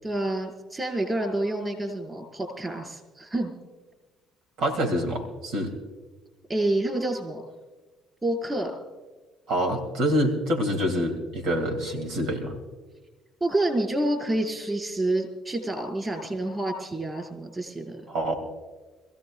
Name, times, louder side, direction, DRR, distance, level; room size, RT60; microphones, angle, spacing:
voice 1, 0.0-3.5 6.5-7.4 8.2-8.7 13.4-18.0, right 1 dB, 20° right, 2 dB, 5.4 m, -28 dB
voice 2, 4.6-5.7 9.5-12.5 18.1-18.3, equal, 75° right, 3 dB, 2.8 m, -26 dB
26.5 x 15.5 x 2.5 m, 1.3 s
supercardioid pair, 80°, 0 cm